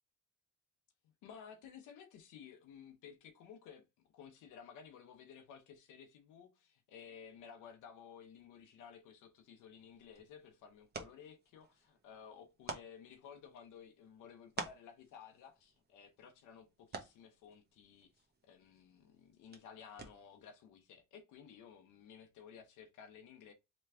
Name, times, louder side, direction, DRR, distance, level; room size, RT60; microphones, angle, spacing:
voice 1, 1.2-3.8 4.1-23.5, left 7 dB, 90° left, 0.8 m, -55 dB
sound 1, 9.8-20.5, right 4 dB, 35° right, 1.1 m, -52 dB
3.4 x 3.0 x 3.4 m
cardioid pair, 90°, 30 cm